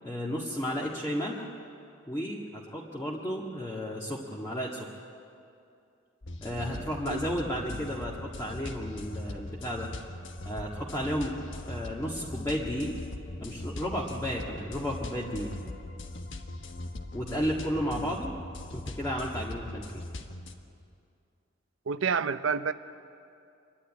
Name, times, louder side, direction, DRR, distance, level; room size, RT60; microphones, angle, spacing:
voice 1, 0.0-1.5 2.1-4.9 6.4-9.9 10.4-11.3 11.7-13.0 13.4-15.5 17.1-18.3 18.7-20.0, equal, 15° left, -5 dB, 1.8 m, -33 dB
sound 1, 6.2-20.6, left 2 dB, 70° left, 1.3 m, -40 dB
voice 2, 21.9-22.7, right 5 dB, 90° right, 12 dB, 0.7 m, -28 dB
25.5 x 11.5 x 9.7 m, 2.5 s
head